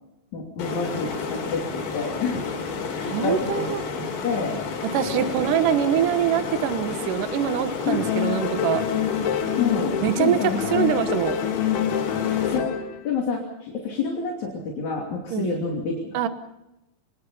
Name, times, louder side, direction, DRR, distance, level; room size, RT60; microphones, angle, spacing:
voice 1, 0.3-2.5 2.9-3.7 4.0-4.6 5.1-5.3 7.9-8.1 9.6-10.8 12.4-16.0, left 5 dB, 45° left, -1 dB, 3.8 m, -28 dB
sound 1, 0.6-12.6, left 5 dB, 60° left, 4.6 m, -31 dB
voice 2, 3.1-3.8 4.9-8.8 10.0-10.4 10.7-11.4 15.3-15.6 16.1-16.3, right 10 dB, 65° right, 10 dB, 2.1 m, -24 dB
sound 2, 7.9-10.3 10.6-13.0, left 9 dB, 85° left, 4.4 m, -26 dB
25.0 x 21.0 x 5.6 m, 0.91 s
omnidirectional pair, 5.2 m